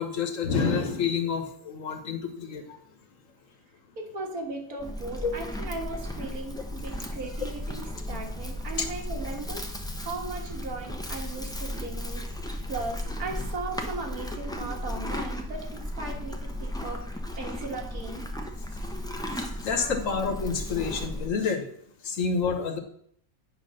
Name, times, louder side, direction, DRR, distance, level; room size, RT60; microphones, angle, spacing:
voice 1, 0.0-2.8 5.2-5.3 19.1-21.6 22.0-22.8, left 5 dB, 65° left, 6 dB, 1.4 m, -28 dB
voice 2, 4.0-12.2 12.7-18.3, right 3 dB, 85° right, 1 dB, 2.1 m, -37 dB
Livestock farm animals working animals, 4.8-21.3, left 1 dB, 5° left, 0.4 m, -35 dB
8.8 x 4.2 x 6.3 m, 0.65 s
omnidirectional pair, 1.5 m